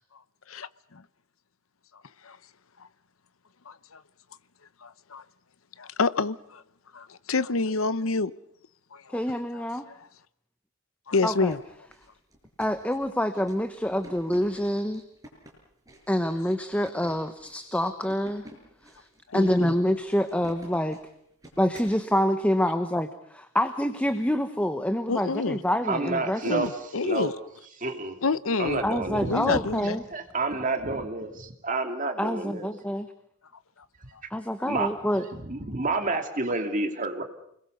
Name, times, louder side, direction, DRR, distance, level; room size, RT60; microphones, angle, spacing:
voice 1, 4.8-5.2 5.8-6.6 6.9-8.3 8.9-9.0 9.5-9.6 11.1-11.6 19.3-19.7 25.1-25.6 26.4-27.3 28.2-28.8 29.3-30.0, left 3 dB, 85° left, 15 dB, 0.9 m, -27 dB
voice 2, 9.1-9.9 11.2-11.5 12.6-15.0 16.1-18.5 18.8-19.1 19.3-21.0 21.6-26.6 28.8-30.0 32.2-33.1 34.3-35.2, equal, 5° left, 9 dB, 1.0 m, -27 dB
sound 1, 11.2-22.0, right 1 dB, 15° right, 6.7 m, -50 dB
voice 3, 25.9-27.3 27.8-28.1 28.6-32.7 34.6-34.9 35.3-37.2, right 3 dB, 40° right, 5 dB, 2.7 m, -30 dB
29.0 x 21.0 x 6.8 m, 0.72 s
head